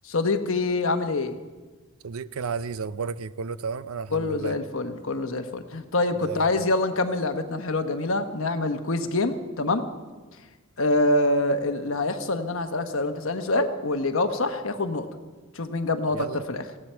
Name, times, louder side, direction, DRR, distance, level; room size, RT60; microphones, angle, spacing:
voice 1, 0.0-1.4 4.1-9.8 10.8-15.1 15.5-16.6, left 2 dB, 65° left, 7 dB, 1.2 m, -25 dB
voice 2, 2.0-4.6 6.2-6.5 16.1-16.4, right 5 dB, 75° right, 16 dB, 0.5 m, -32 dB
18.0 x 16.0 x 4.5 m, 1.3 s
head